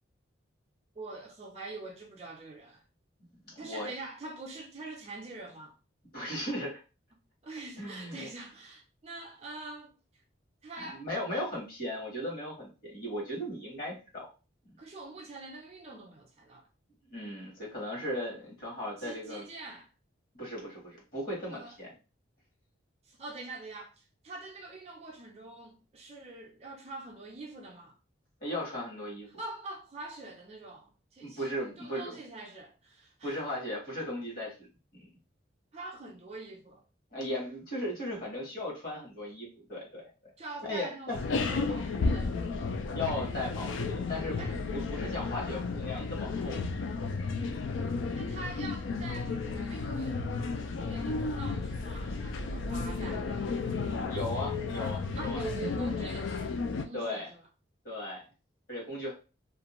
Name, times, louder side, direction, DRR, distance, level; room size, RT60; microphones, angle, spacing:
voice 1, 1.0-2.8 3.6-5.8 7.4-9.9 10.6-11.0 14.8-16.7 19.0-19.9 21.5-21.8 23.0-28.0 29.4-33.4 35.7-36.8 40.4-42.5 44.4-44.6 45.1-45.4 48.1-54.4 55.1-57.4, right 2 dB, 35° right, 0.4 m, -44 dB
voice 2, 3.4-3.9 6.1-6.8 7.8-8.3 10.8-14.3 17.1-19.5 20.3-21.9 28.4-29.3 31.2-32.2 33.2-34.5 34.9-35.1 37.1-40.1 40.6-41.2 42.9-46.6 54.1-55.4 56.9-57.3 57.8-58.2 58.7-59.1, left 1 dB, 50° left, 1.3 m, -37 dB
sound 1, 41.1-56.8, left 4 dB, 75° left, 0.4 m, -33 dB
2.4 x 2.2 x 2.9 m
head